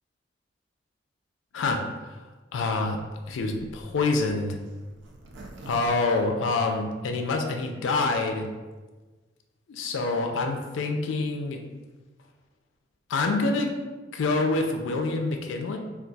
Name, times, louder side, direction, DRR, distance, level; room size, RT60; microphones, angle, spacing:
voice 1, 1.5-2.1 2.5-3.0 3.3-4.6 5.7-8.5 9.7-11.6 13.1-13.7 14.1-15.8, left 3 dB, 85° left, 4 dB, 0.4 m, -26 dB
Zipper (clothing), 2.8-7.1 7.6-7.7 7.8-7.9 8.2-8.5, right 2 dB, 80° right, 0.4 m, -46 dB
2.3 x 2.3 x 3.9 m, 1.3 s
head